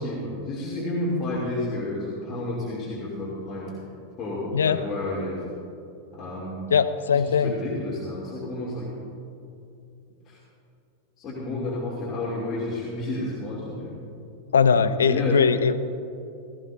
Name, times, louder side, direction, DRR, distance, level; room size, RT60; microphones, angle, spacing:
voice 1, 0.0-3.7 4.2-5.4 6.1-6.7 7.1-8.9 10.3-10.4 11.2-14.0 14.7-15.4, left 2 dB, 30° left, -6 dB, 2.7 m, -31 dB
voice 2, 6.7-7.5 14.5-15.8, left 6 dB, 70° left, 13 dB, 0.5 m, -20 dB
16.5 x 15.5 x 2.6 m, 2.6 s
figure-of-eight pair, 90°, 0 cm